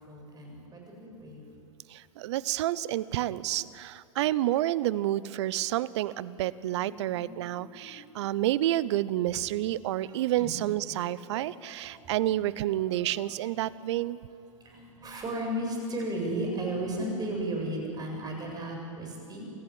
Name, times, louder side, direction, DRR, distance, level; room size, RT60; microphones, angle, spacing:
voice 1, 0.0-1.4 6.8-8.7 9.0-9.1 9.7-9.8 10.0-10.6 10.9-12.3 12.9-13.7 14.6-19.4, right 1 dB, 25° right, 1 dB, 7.9 m, -36 dB
voice 2, 1.9-14.2, right 14 dB, 60° right, 19 dB, 0.8 m, -29 dB
27.5 x 14.5 x 9.6 m, 2.4 s
hypercardioid pair, 105°, 17 cm